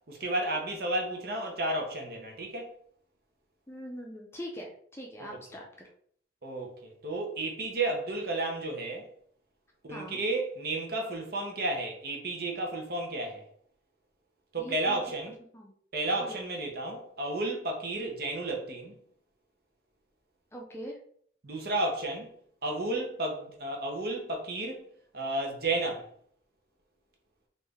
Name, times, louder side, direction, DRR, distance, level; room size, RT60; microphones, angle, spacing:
voice 1, 0.1-2.7 5.2-5.4 6.4-9.0 9.8-13.4 14.5-15.3 15.9-19.0 21.4-22.3 22.6-24.8 25.1-26.1, right 2 dB, 55° right, 0.9 m, -32 dB
voice 2, 3.7-5.9 9.9-10.2 14.6-15.0 15.5-15.7 16.2-16.4 20.5-21.0, equal, 15° left, 0.5 m, -42 dB
3.3 x 2.6 x 3.4 m
head